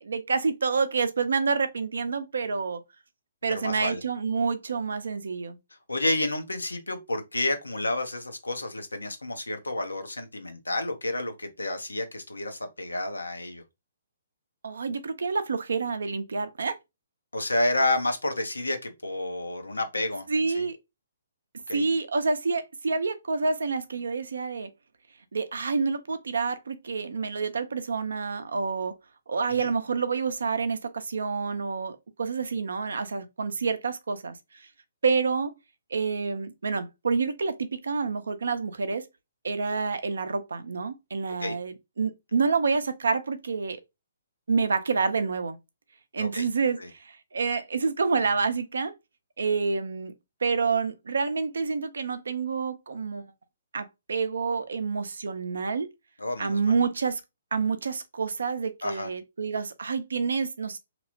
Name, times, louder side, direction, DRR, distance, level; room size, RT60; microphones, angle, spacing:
voice 1, 0.0-2.8 3.4-5.6 14.6-16.7 20.3-20.8 21.7-24.7 25.3-28.9 29.3-34.7 35.0-35.5 35.9-39.1 39.4-43.8 44.5-45.6 46.1-48.9 49.4-50.1 50.4-53.2 53.7-55.9 56.4-57.2 57.5-60.8, right 4 dB, 70° right, 0.5 m, -28 dB
voice 2, 3.5-4.0 5.9-13.6 17.3-20.3 20.5-20.7 21.7-21.8 29.6-29.7 41.3-41.6 46.2-46.5 46.8-46.9 56.2-56.7 58.8-59.1, left 2 dB, 85° left, 0.7 m, -30 dB
2.9 x 2.0 x 2.7 m
figure-of-eight pair, 130°, 0 cm